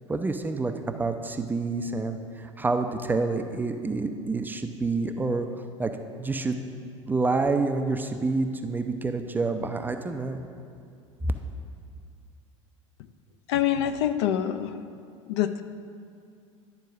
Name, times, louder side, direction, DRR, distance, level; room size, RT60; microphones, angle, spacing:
voice 1, 0.1-0.7 1.0-5.5 5.8-5.9 6.2-6.6 7.1-10.4, right 3 dB, 10° right, 6 dB, 0.4 m, -28 dB
voice 2, 13.5-14.7 15.3-15.6, left 10 dB, 50° left, 9 dB, 0.5 m, -25 dB
11.0 x 4.5 x 6.0 m, 2.3 s
figure-of-eight pair, 75°, 17 cm